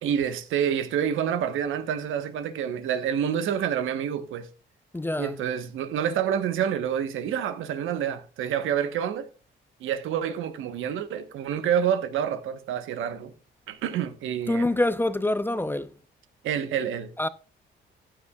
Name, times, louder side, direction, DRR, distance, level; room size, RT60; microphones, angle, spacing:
voice 1, 0.0-4.5 5.2-9.3 9.8-13.3 13.7-14.7 16.4-17.1, right 9 dB, 85° right, 1.2 m, -28 dB
voice 2, 4.9-5.4 14.5-15.9 17.2-17.3, left 1 dB, 10° left, 0.6 m, -25 dB
15.0 x 10.0 x 2.4 m
cardioid pair, 90°, 20 cm